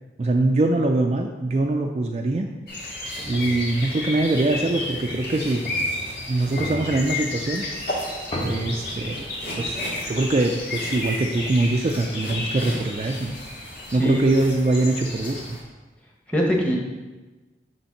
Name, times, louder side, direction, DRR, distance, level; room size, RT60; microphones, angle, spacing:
voice 1, 0.2-2.5 3.3-5.7 6.3-7.6 8.4-9.3 9.6-13.4 13.9-15.6, right 2 dB, 35° right, 2 dB, 0.3 m, -23 dB
sound 1, 2.7-15.6, left 1 dB, 55° left, 2.0 m, -32 dB
sound 2, 3.1-10.2, equal, 30° left, 0.7 m, -38 dB
voice 2, 13.9-14.3 16.3-16.8, equal, 5° left, -1 dB, 1.0 m, -22 dB
6.9 x 3.4 x 5.7 m, 1.2 s
head